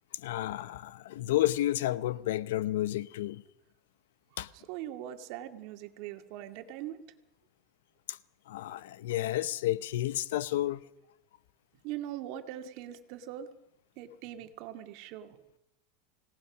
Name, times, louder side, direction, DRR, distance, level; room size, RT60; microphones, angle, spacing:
voice 1, 0.1-3.4 4.4-4.5 8.1-8.2 8.5-10.8, left 14 dB, 85° left, 0.8 m, -31 dB
voice 2, 4.5-7.0 11.8-13.5 14.0-15.5, right 12 dB, 55° right, 2.1 m, -41 dB
25.5 x 18.0 x 6.2 m
supercardioid pair, 155°, 0 cm